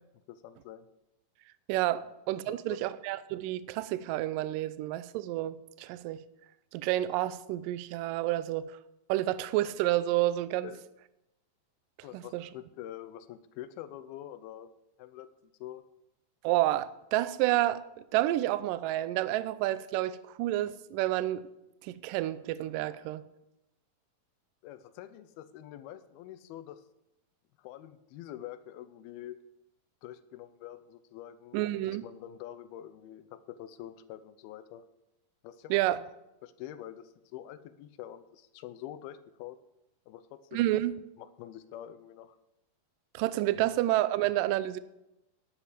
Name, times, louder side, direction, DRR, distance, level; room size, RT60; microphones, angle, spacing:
voice 1, 0.3-0.9 2.5-2.8 10.6-10.9 12.0-14.7 15.0-15.8 24.6-26.8 27.6-29.4 30.0-34.8 35.4-36.1 36.4-39.6 40.1-40.7 41.2-42.4, left 12 dB, 85° left, 2.6 m, -46 dB
voice 2, 1.7-2.0 2.3-6.2 6.7-8.7 9.1-10.7 12.1-12.5 16.4-21.4 21.8-23.2 31.5-32.0 35.7-36.0 40.5-41.0 43.1-44.8, right 15 dB, 80° right, 2.0 m, -29 dB
11.5 x 9.9 x 5.0 m
omnidirectional pair, 4.3 m